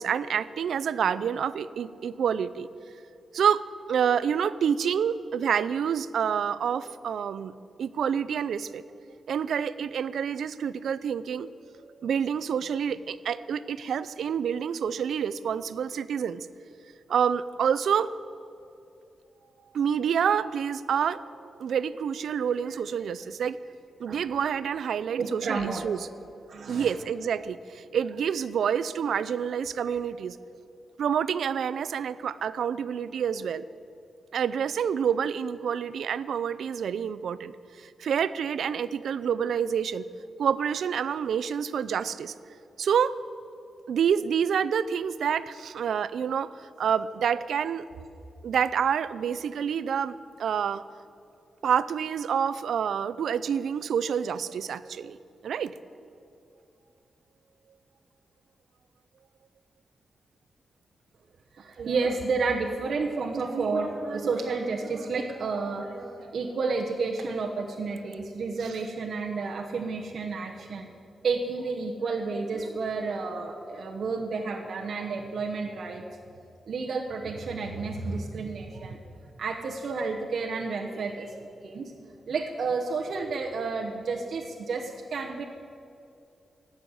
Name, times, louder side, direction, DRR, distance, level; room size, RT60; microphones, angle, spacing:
voice 1, 0.0-2.7 3.3-7.5 7.8-8.8 9.3-11.5 12.0-16.5 17.1-18.1 19.7-23.6 24.0-26.0 26.7-30.4 31.0-33.7 34.3-37.5 38.0-40.0 40.4-42.3 42.8-43.1 43.9-46.5 46.8-47.8 48.4-50.8 51.6-55.2 55.4-55.7, right 7 dB, 80° right, 16 dB, 0.4 m, -28 dB
voice 2, 24.1-24.4 25.2-25.8 26.5-26.9 61.5-70.9 71.2-76.2 76.7-81.9 82.3-85.4, right 4 dB, 60° right, 0 dB, 1.0 m, -31 dB
16.0 x 6.4 x 9.7 m, 2.6 s
wide cardioid pair, 165°, 0 cm